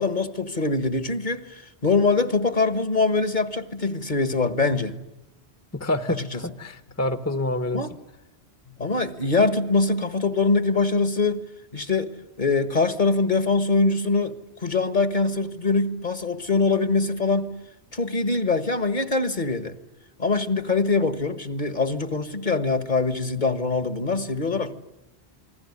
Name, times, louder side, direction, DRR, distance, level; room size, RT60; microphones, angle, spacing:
voice 1, 0.0-5.0 6.1-6.4 7.7-7.9 8.8-11.4 11.7-12.1 12.4-17.5 17.9-19.7 20.2-24.7, left 3 dB, 45° left, 1.7 m, -23 dB
voice 2, 5.7-7.8, left 1 dB, 15° left, 1.2 m, -27 dB
28.0 x 20.5 x 9.8 m
omnidirectional pair, 1.1 m